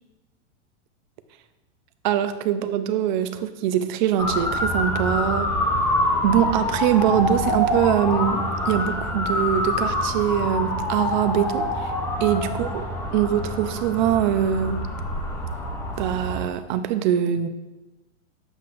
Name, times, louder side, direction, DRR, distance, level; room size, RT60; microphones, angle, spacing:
voice 1, 2.0-5.5 6.2-11.9 12.2-12.8 13.1-14.9 16.0-17.5, right 10 dB, 40° right, 10 dB, 0.5 m, -23 dB
Motor vehicle (road) / Siren, 4.2-16.4, left 1 dB, 5° left, 0.5 m, -26 dB
9.1 x 7.8 x 2.5 m, 1.1 s
hypercardioid pair, 145°, 36 cm